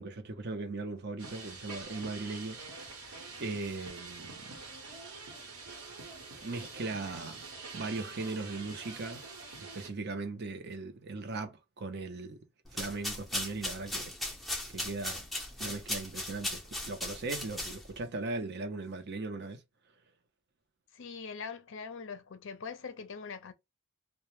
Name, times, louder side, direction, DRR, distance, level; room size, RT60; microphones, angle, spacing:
voice 1, 0.0-3.1 3.4-4.6 6.4-7.4 7.7-9.2 9.6-12.4 12.7-14.1 14.7-15.3 15.6-19.6, right 3 dB, 45° right, 0.5 m, -39 dB
sound 1, 1.2-9.9, right 3 dB, 75° right, 1.0 m, -46 dB
sound 2, 12.7-18.0, left 1 dB, ahead, 0.5 m, -38 dB
voice 2, 20.9-23.5, left 5 dB, 55° left, 0.5 m, -42 dB
2.1 x 2.0 x 2.9 m
head